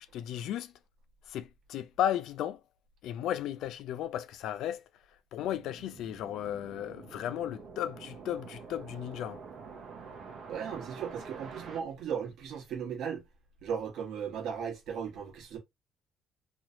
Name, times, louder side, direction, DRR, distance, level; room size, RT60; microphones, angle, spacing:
voice 1, 0.1-0.7 1.3-2.6 3.0-4.8 5.3-9.4, left 11 dB, 85° left, 0.4 m, -34 dB
sound 1, 5.4-11.8, right 5 dB, 50° right, 0.9 m, -47 dB
voice 2, 10.5-13.2 13.6-15.6, right 7 dB, 75° right, 1.3 m, -36 dB
3.1 x 3.1 x 2.6 m
cardioid pair, 165°, 0 cm